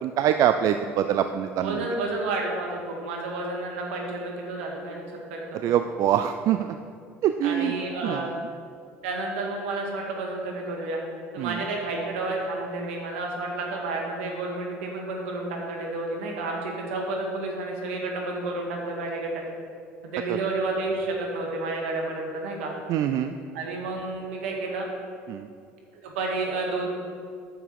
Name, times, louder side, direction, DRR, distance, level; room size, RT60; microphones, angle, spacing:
voice 1, 0.0-1.8 5.6-6.8 7.2-7.7 8.0-8.3 11.4-11.6 22.9-23.3 25.3-25.5, right 10 dB, 55° right, 8 dB, 0.4 m, -24 dB
voice 2, 1.6-5.0 5.3-5.6 7.4-8.3 9.0-11.0 11.3-19.3 20.0-22.7 23.5-24.9 25.9-26.9, right 2 dB, 85° right, 0 dB, 1.8 m, -30 dB
9.9 x 7.0 x 4.7 m, 2.3 s
hypercardioid pair, 70°, 7 cm